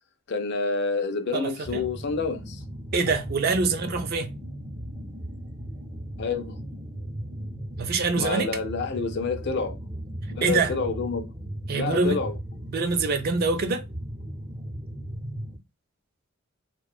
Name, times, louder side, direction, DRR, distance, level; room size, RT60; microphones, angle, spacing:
voice 1, 0.3-2.6 6.2-6.6 8.2-9.8 10.3-11.3 11.7-12.4, left 4 dB, 55° left, 0.4 m, -28 dB
voice 2, 1.3-1.8 2.9-4.3 7.8-8.5 10.4-10.7 11.7-12.2 12.7-13.8, right 4 dB, 45° right, 0.4 m, -25 dB
sound 1, 1.6-15.6, right 1 dB, 15° right, 0.8 m, -37 dB
2.8 x 2.1 x 2.3 m
head